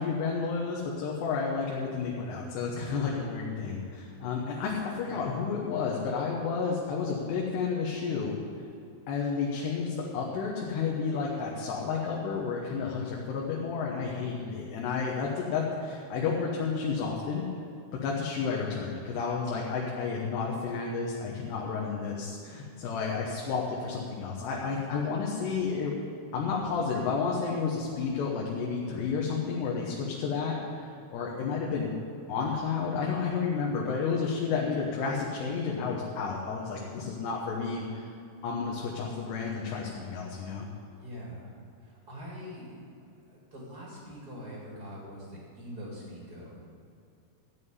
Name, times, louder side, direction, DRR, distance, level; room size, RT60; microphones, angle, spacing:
voice 1, 0.0-8.4 9.1-17.4 17.9-26.0 26.3-31.9 32.3-38.1 38.4-40.7, left 5 dB, 85° left, -3 dB, 3.4 m, -31 dB
voice 2, 41.0-41.5 41.8-42.8 43.3-46.6, equal, 30° right, -4 dB, 2.2 m, -43 dB
14.0 x 5.6 x 9.6 m, 2.6 s
omnidirectional pair, 4.7 m